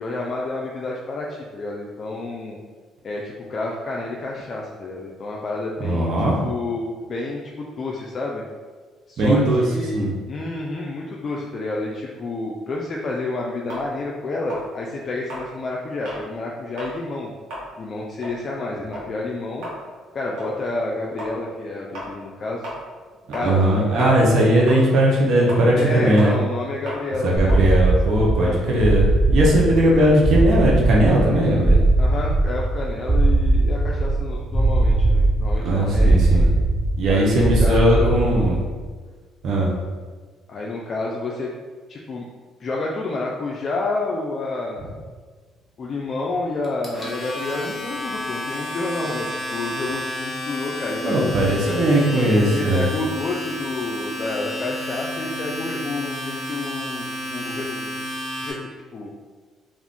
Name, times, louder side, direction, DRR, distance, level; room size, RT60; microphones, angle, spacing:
voice 1, 0.0-2.6 3.0-8.4 9.1-17.3 17.8-19.7 20.1-22.7 23.3-25.0 25.7-27.7 28.1-29.0 32.0-36.5 37.1-38.2 40.5-41.5 41.9-42.3 42.6-45.0 45.8-51.3 51.6-51.8 52.4-57.9 58.4-58.6 58.9-59.1, left 2 dB, 45° left, -2 dB, 0.3 m, -29 dB
voice 2, 5.8-6.3 9.2-9.6 9.9-10.1 23.4-26.3 27.2-31.8 35.6-36.5 37.0-38.6 39.4-39.7 51.0-52.8, right 1 dB, 65° right, -3 dB, 0.7 m, -18 dB
sound 1, 13.7-16.3 16.7-17.0 17.3-23.7 24.0-28.8, equal, 80° right, 1.1 m, -37 dB
sound 2, 27.4-38.7, right 2 dB, 25° right, 1.2 m, -19 dB
Domestic sounds home sounds, 46.6-58.5, left 1 dB, 10° left, 0.9 m, -31 dB
2.4 x 2.4 x 3.5 m, 1.5 s
supercardioid pair, 75°, 0 cm